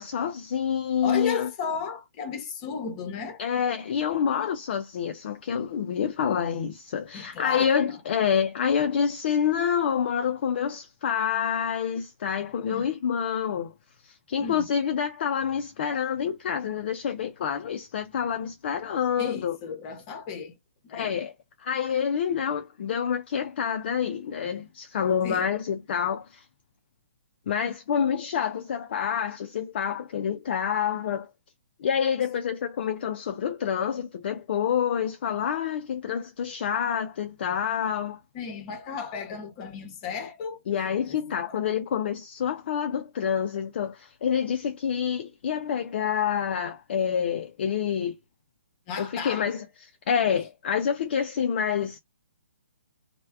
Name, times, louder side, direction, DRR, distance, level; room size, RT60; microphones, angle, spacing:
voice 1, 0.0-1.5 3.4-13.7 14.0-19.6 20.9-21.3 21.6-26.4 27.5-31.3 31.8-38.2 40.7-48.2 49.0-52.0, left 8 dB, 45° left, 0.4 m, -27 dB
voice 2, 1.0-3.4 7.1-7.9 12.7-12.8 14.4-14.6 19.2-20.5 20.8-21.2 25.2-25.5 38.3-40.6 41.1-41.6 48.9-49.6, left 6 dB, 30° left, 0.9 m, -34 dB
3.3 x 2.2 x 3.3 m
figure-of-eight pair, 135°, 8 cm